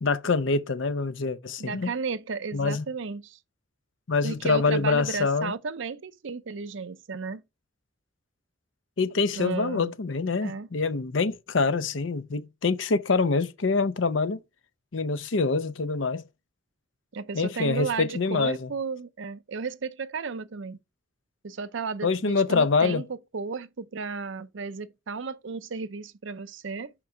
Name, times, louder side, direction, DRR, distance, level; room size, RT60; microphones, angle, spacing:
voice 1, 0.0-1.9 2.5-2.8 4.1-5.5 9.0-14.4 14.9-16.2 17.3-18.7 22.0-23.0, left 4 dB, 65° left, 0.6 m, -25 dB
voice 2, 1.6-3.4 4.2-7.4 9.3-9.9 10.4-10.7 17.1-20.8 21.4-23.0 23.3-26.9, right 4 dB, 65° right, 0.6 m, -34 dB
5.9 x 5.2 x 4.6 m
head